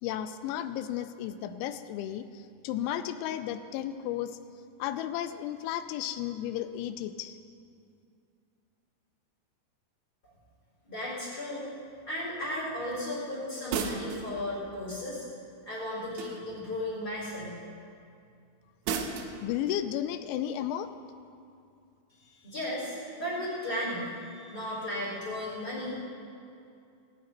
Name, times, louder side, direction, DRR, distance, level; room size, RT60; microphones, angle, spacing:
voice 1, 0.0-4.4 4.8-7.4 19.4-20.9, left 11 dB, 85° left, 11 dB, 2.8 m, -33 dB
voice 2, 10.8-11.7 12.1-15.2 15.7-17.6 22.1-25.9, left 1 dB, 20° left, -10 dB, 4.1 m, -35 dB
sound 1, 13.7-14.3 16.2-16.6 18.8-19.4, right 6 dB, 75° right, 3.0 m, -33 dB
19.0 x 17.0 x 3.0 m, 2.5 s
omnidirectional pair, 5.5 m